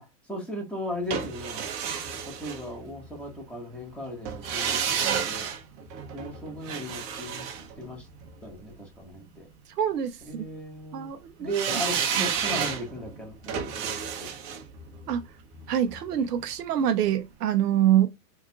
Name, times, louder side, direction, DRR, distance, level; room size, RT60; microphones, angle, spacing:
voice 1, 0.0-1.6 2.4-5.5 6.1-7.4 7.8-8.1 8.4-9.5 10.3-11.1 11.4-14.3, equal, ahead, 1.7 m, -37 dB
sound 1, 1.1-3.2 4.3-8.5 11.5-16.5 16.8-16.9, right 7 dB, 40° right, 0.8 m, -31 dB
voice 2, 9.8-10.2 10.9-11.5 12.2-12.3 15.1-15.2 15.7-18.1, right 10 dB, 80° right, 0.8 m, -25 dB
3.8 x 2.8 x 2.4 m
hypercardioid pair, 115°, 47 cm